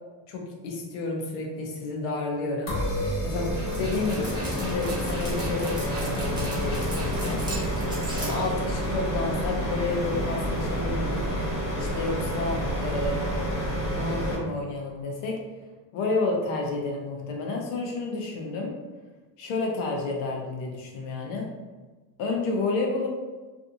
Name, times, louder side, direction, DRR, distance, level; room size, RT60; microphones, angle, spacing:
voice 1, 0.3-2.8 3.2-7.4 7.8-7.9 8.2-11.3 11.8-13.4 13.9-15.4 15.9-18.7 19.4-21.5 22.2-23.1, left 3 dB, 85° left, 0 dB, 0.8 m, -30 dB
sound 1, 2.7-14.3, equal, 35° left, 1.1 m, -29 dB
Dog, 3.3-9.1, right 1 dB, 10° right, 0.8 m, -36 dB
2.6 x 2.4 x 2.6 m, 1.3 s
cardioid pair, 125°, 46 cm